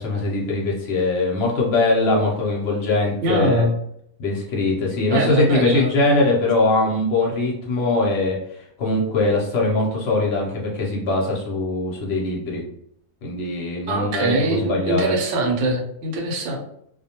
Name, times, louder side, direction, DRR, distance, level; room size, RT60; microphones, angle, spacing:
voice 1, 0.0-3.7 4.2-12.6 13.2-15.1, left 2 dB, 60° left, -2 dB, 0.7 m, -21 dB
voice 2, 3.2-3.7 5.1-5.9 13.9-16.6, right 2 dB, 65° right, 1 dB, 0.9 m, -22 dB
2.3 x 2.1 x 2.8 m, 0.71 s
omnidirectional pair, 1.4 m